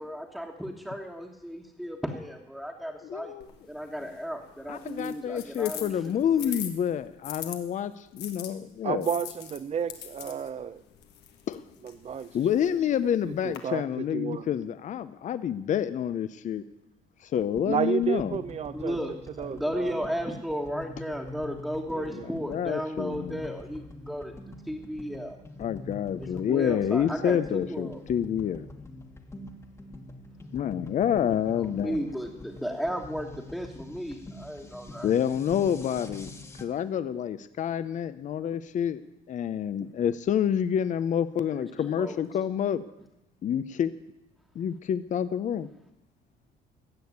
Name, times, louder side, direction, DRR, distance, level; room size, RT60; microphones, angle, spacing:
voice 1, 0.0-3.3 3.6-6.1 6.4-6.6 18.7-24.4 24.6-25.4 26.2-28.0 31.5-35.1 41.5-42.2, equal, ahead, -2 dB, 1.5 m, -34 dB
voice 2, 3.0-3.5 4.7-9.1 11.5-11.6 12.3-16.6 17.2-18.4 22.4-23.4 25.6-28.7 30.5-32.0 35.0-36.3 36.6-39.0 39.3-42.8 43.4-43.9 44.5-45.7, left 9 dB, 45° left, 14 dB, 0.7 m, -28 dB
sound 1, 3.4-7.6 8.2-13.6, left 10 dB, 80° left, 1.6 m, -43 dB
voice 3, 8.8-10.8 11.8-12.4 13.2-14.5 17.6-19.0 19.4-20.1 21.9-22.3, right 7 dB, 40° right, 15 dB, 0.8 m, -32 dB
sound 2, 17.4-36.6, left 2 dB, 15° left, 1.4 m, -45 dB
15.5 x 6.5 x 9.5 m, 0.90 s
cardioid pair, 110°, 17 cm